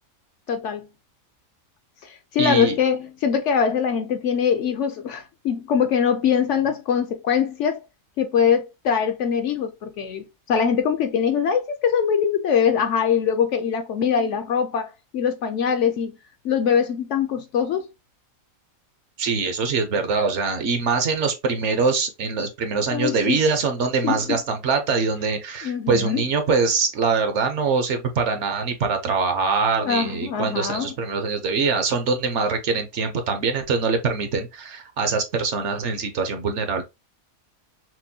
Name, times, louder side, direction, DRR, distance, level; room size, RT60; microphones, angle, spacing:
voice 1, 0.5-0.9 2.0-7.8 8.2-16.1 16.4-17.9 22.9-23.4 24.0-24.4 25.6-26.3 29.8-30.9, left 7 dB, 65° left, 0.8 m, -23 dB
voice 2, 2.4-2.7 19.2-36.8, right 4 dB, 60° right, 1.0 m, -23 dB
6.0 x 2.2 x 2.7 m
omnidirectional pair, 1.5 m